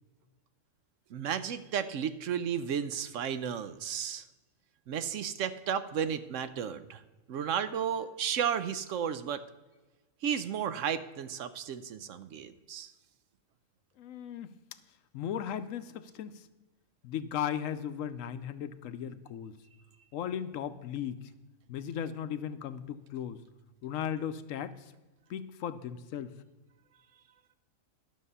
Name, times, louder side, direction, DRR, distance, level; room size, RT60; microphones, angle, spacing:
voice 1, 1.1-4.2 4.9-7.0 7.3-9.4 10.2-12.9, right 8 dB, 75° right, 11 dB, 0.9 m, -33 dB
voice 2, 14.0-14.5 15.1-16.4 17.0-19.5 20.1-21.3 21.7-23.4 23.8-24.9 25.3-26.3, left 9 dB, 80° left, 12 dB, 1.0 m, -36 dB
12.0 x 6.6 x 5.5 m, 1.2 s
omnidirectional pair, 1.4 m